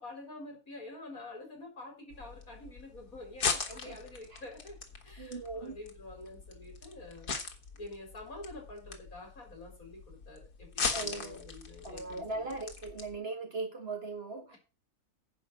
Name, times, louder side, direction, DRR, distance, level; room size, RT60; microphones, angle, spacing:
voice 1, 0.0-4.7 5.0-7.3 7.7-12.5, left 2 dB, 60° left, 1 dB, 4.7 m, -47 dB
sound 1, 2.1-13.2, left 5 dB, 85° left, 2.1 m, -39 dB
voice 2, 3.7-4.4 5.2-5.8 10.9-11.4 11.8-14.6, right 3 dB, 40° right, 5 dB, 1.8 m, -39 dB
10.0 x 5.1 x 7.6 m, 0.33 s
omnidirectional pair, 1.6 m